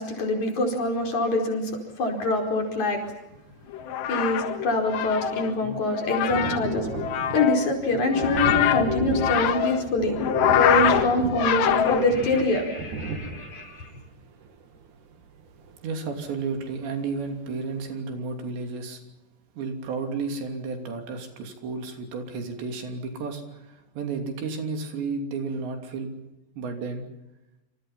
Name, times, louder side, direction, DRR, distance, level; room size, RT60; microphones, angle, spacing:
voice 1, 0.0-3.0 4.1-6.9 7.3-10.2 10.5-13.9, left 2 dB, 45° left, 2 dB, 5.9 m, -25 dB
sound 1, 3.7-12.4, left 10 dB, 80° left, 3.7 m, -25 dB
Thunder, 3.8-3.9 4.1-16.8 17.2-17.3 17.7-17.8, right 4 dB, 55° right, 3.2 m, -36 dB
voice 2, 15.8-19.0 19.6-26.1 26.6-27.1, right 4 dB, 85° right, 4 dB, 5.2 m, -32 dB
28.0 x 27.5 x 5.8 m, 0.97 s
omnidirectional pair, 4.9 m